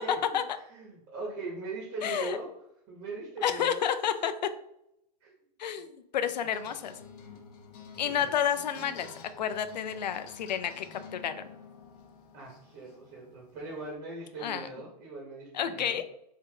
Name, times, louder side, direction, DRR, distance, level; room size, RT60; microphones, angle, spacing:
voice 1, 0.0-0.3 0.7-2.5 2.9-3.8 5.2-5.3 8.0-8.3 12.3-16.1, right 3 dB, 45° right, -1 dB, 1.1 m, -40 dB
voice 2, 2.0-2.4 3.4-4.3 5.6-6.9 8.0-9.1 9.4-10.9 11.1-11.5 14.4-14.7 15.5-16.0, left 9 dB, 90° left, 10 dB, 0.5 m, -30 dB
sound 1, 6.3-14.0, left 6 dB, 60° left, 1.0 m, -50 dB
3.5 x 2.8 x 3.3 m, 0.78 s
hypercardioid pair, 125°, 21 cm